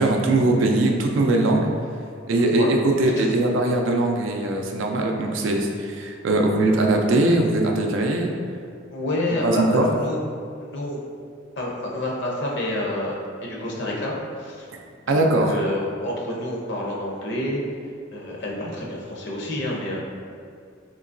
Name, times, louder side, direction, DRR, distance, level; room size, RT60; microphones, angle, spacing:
voice 1, 0.0-1.7 2.3-8.3 9.4-9.9 15.1-15.5, right 2 dB, 75° right, 2 dB, 0.4 m, -21 dB
voice 2, 2.4-2.7 3.2-3.4 8.9-10.2 10.6-11.0 11.6-14.7 15.0-17.6 18.1-20.0, left 1 dB, 65° left, -3 dB, 0.7 m, -28 dB
3.7 x 2.8 x 2.5 m, 2.2 s
head